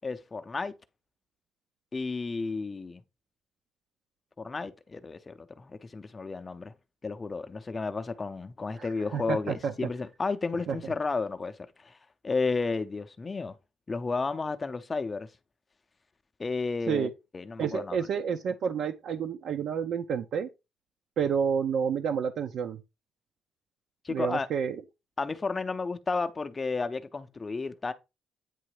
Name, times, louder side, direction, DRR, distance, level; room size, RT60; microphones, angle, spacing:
voice 1, 0.0-0.7 1.9-3.0 4.4-6.7 7.0-12.0 12.2-13.6 13.9-15.3 16.4-17.1 17.3-18.0 24.0-24.5 25.2-27.9, left 4 dB, 20° left, 0.6 m, -32 dB
voice 2, 8.8-9.7 10.7-10.9 16.9-17.1 17.6-20.5 21.2-22.8 24.1-24.8, right 7 dB, 65° right, 0.7 m, -30 dB
9.1 x 3.2 x 4.8 m
cardioid pair, 160°, 0 cm